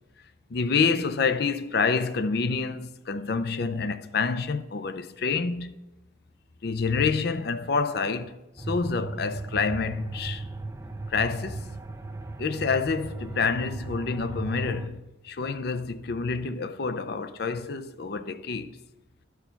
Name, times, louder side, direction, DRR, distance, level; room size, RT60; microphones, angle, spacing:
voice 1, 0.5-5.8 6.6-10.4 11.1-11.7 12.4-18.8, left 4 dB, 55° left, 0.5 m, -28 dB
sound 1, 8.6-14.9, right 2 dB, 15° right, 0.3 m, -37 dB
12.0 x 4.7 x 5.7 m
head